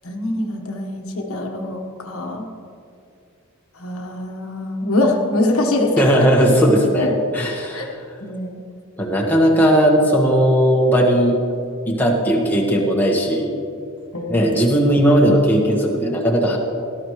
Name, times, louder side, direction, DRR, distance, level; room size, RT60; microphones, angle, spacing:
voice 1, 0.0-2.5 3.8-6.2 7.0-7.1 7.7-7.9 8.2-8.6 14.1-14.6, left 1 dB, 75° left, 1 dB, 1.4 m, -23 dB
voice 2, 6.0-8.0 9.0-11.4 11.8-13.5 14.3-16.6, equal, 10° left, -2 dB, 1.5 m, -17 dB
18.0 x 13.0 x 3.2 m, 2.4 s
head